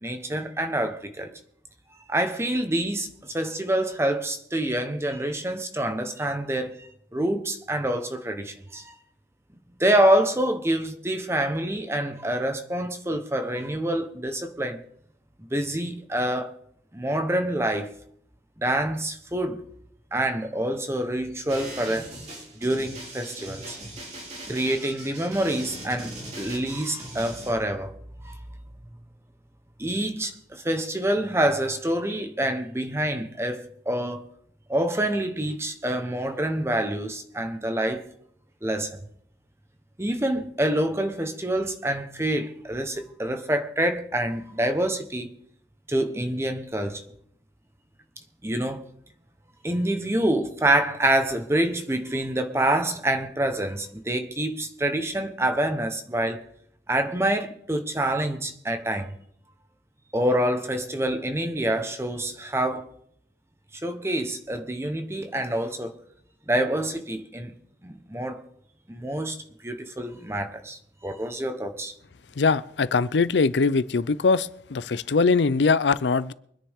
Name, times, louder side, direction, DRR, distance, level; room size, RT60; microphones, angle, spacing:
voice 1, 0.0-1.3 2.1-9.0 9.8-14.8 15.4-16.5 16.9-17.9 18.6-19.6 20.1-22.1 22.6-23.8 24.5-27.9 28.2-28.3 29.8-34.2 34.7-38.0 38.6-39.0 40.0-45.3 45.9-47.0 48.4-48.8 49.6-56.4 56.9-59.1 60.1-62.9 63.8-65.9 66.5-67.5 67.8-68.4 68.9-69.4 69.6-71.9, right 1 dB, 15° right, 1.1 m, -26 dB
sound 1, 21.5-27.5, right 1 dB, 40° right, 3.4 m, -40 dB
voice 2, 72.4-76.3, left 4 dB, 90° left, 0.6 m, -22 dB
24.0 x 10.0 x 3.7 m
head